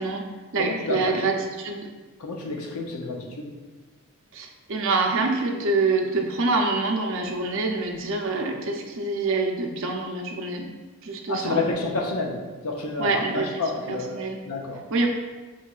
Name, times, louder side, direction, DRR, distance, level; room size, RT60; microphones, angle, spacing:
voice 1, 0.0-1.9 4.3-10.7 11.0-11.6 13.0-13.5 13.9-14.4 14.9-15.1, right 3 dB, 60° right, 2 dB, 0.5 m, -26 dB
voice 2, 0.6-1.2 2.2-3.5 11.3-14.2 14.5-14.8, left 3 dB, 80° left, 1 dB, 0.6 m, -29 dB
5.2 x 3.1 x 2.4 m, 1.3 s
head